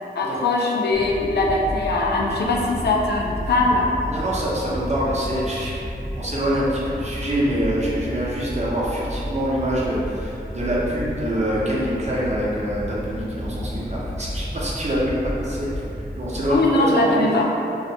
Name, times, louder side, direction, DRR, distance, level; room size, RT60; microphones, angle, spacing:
voice 1, 0.2-3.9 16.5-17.5, left 2 dB, 70° left, -2 dB, 0.4 m, -21 dB
sound 1, 0.9-16.6, equal, 5° right, 0.8 m, -32 dB
voice 2, 4.1-5.7 6.2-15.1 15.4-15.8 16.2-17.4, equal, 40° right, -6 dB, 0.6 m, -25 dB
2.7 x 2.1 x 2.7 m, 2.7 s
cardioid pair, 45°, 18 cm